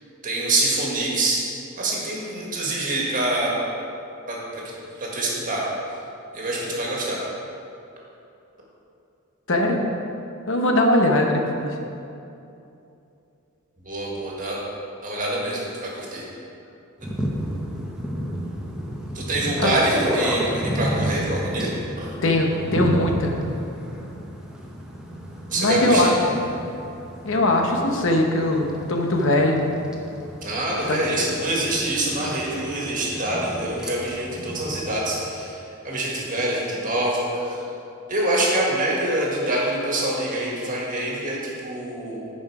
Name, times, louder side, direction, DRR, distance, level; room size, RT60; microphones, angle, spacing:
voice 1, 0.2-1.4 1.8-3.5 4.3-4.6 5.0-5.6 6.3-7.2 13.8-14.6 15.0-16.3 17.0-17.1 19.1-21.7 22.0-22.1 25.5-26.1 30.4-35.6 35.8-37.6 38.1-42.3, right 1 dB, 40° right, -3 dB, 1.8 m, -25 dB
voice 2, 9.5-9.8 10.5-11.7 19.6-19.7 22.2-23.3 25.5-26.1 27.2-29.7 30.8-31.0, left 1 dB, 65° left, 2 dB, 1.0 m, -20 dB
sound 1, 17.0-35.0, equal, 5° right, 0.8 m, -32 dB
10.5 x 5.3 x 4.9 m, 2.7 s
head